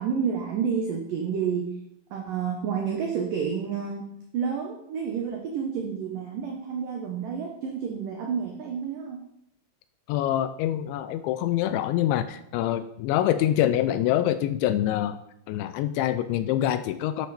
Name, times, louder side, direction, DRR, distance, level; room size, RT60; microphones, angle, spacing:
voice 1, 0.0-1.7 2.1-9.2, right 6 dB, 85° right, 2 dB, 1.9 m, -30 dB
voice 2, 10.1-15.2 15.5-17.3, left 12 dB, 85° left, 12 dB, 2.7 m, -25 dB
10.5 x 9.3 x 4.3 m, 0.76 s
omnidirectional pair, 5.6 m